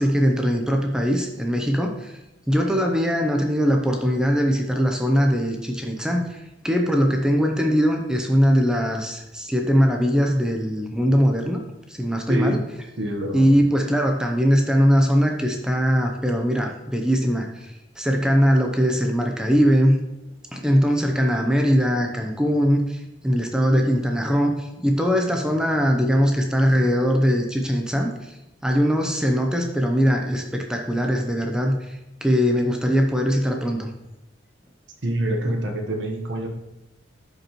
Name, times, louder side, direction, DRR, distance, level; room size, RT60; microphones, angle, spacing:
voice 1, 0.0-2.2 2.5-11.6 11.9-12.6 13.3-20.0 20.5-33.9, equal, 5° right, 2 dB, 0.6 m, -21 dB
voice 2, 12.3-12.6 13.0-13.5 35.0-36.5, right 1 dB, 75° right, 2 dB, 1.1 m, -26 dB
11.5 x 5.3 x 3.0 m, 0.95 s
head